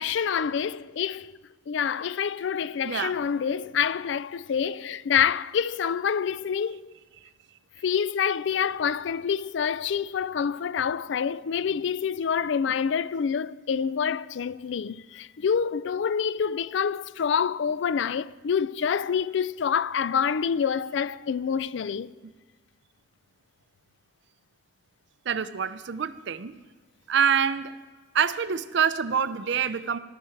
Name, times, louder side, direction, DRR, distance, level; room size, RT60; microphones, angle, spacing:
voice 1, 0.0-1.3 1.7-6.9 7.8-22.1, left 7 dB, 65° left, 0.4 m, -27 dB
voice 2, 2.8-3.2 25.3-26.6 27.1-27.7 28.1-30.0, right 7 dB, 65° right, 0.5 m, -26 dB
14.5 x 12.5 x 4.5 m
head